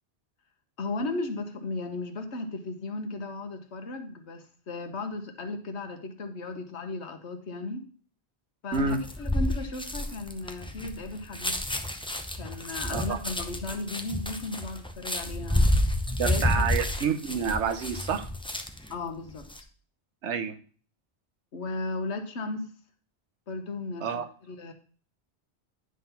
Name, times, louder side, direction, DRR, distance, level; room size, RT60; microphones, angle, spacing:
voice 1, 0.8-7.9 8.6-11.6 12.3-15.6 16.2-16.7 18.9-19.5 21.5-22.7 23.5-24.7, left 3 dB, 75° left, 6 dB, 1.4 m, -35 dB
sound 1, 8.7-18.9 19.3-19.6, left 1 dB, 5° left, 0.5 m, -29 dB
voice 2, 16.2-18.3 20.2-20.6 24.0-24.3, right 6 dB, 85° right, 7 dB, 1.1 m, -28 dB
10.0 x 3.9 x 5.6 m, 0.43 s
omnidirectional pair, 1.1 m